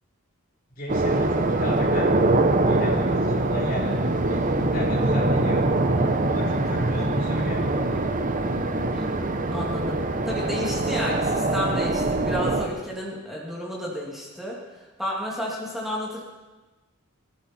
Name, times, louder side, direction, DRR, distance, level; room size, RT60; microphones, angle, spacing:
voice 1, 0.8-2.1 2.6-4.0 4.3-5.6 6.3-8.1, left 1 dB, 45° left, -2 dB, 3.6 m, -35 dB
sound 1, 0.9-12.7, right 2 dB, 40° right, 1.0 m, -23 dB
voice 2, 8.9-14.6 15.0-16.2, equal, ahead, -4 dB, 2.5 m, -32 dB
20.5 x 14.0 x 4.5 m, 1.2 s
head